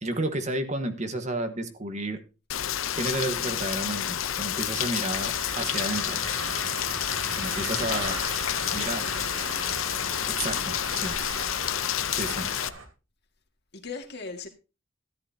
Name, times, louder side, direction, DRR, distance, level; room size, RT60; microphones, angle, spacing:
voice 1, 0.0-2.2 2.9-6.2 7.4-8.2 8.7-9.1 10.3-11.2 12.1-12.5, right 1 dB, 35° right, 1.4 m, -31 dB
Rain, 2.5-12.7, left 10 dB, 80° left, 0.7 m, -29 dB
sound 1, 5.1-12.9, right 3 dB, 80° right, 3.1 m, -38 dB
voice 2, 7.9-8.3 8.6-9.7 13.7-14.5, left 4 dB, 55° left, 2.0 m, -41 dB
13.5 x 11.5 x 2.8 m
head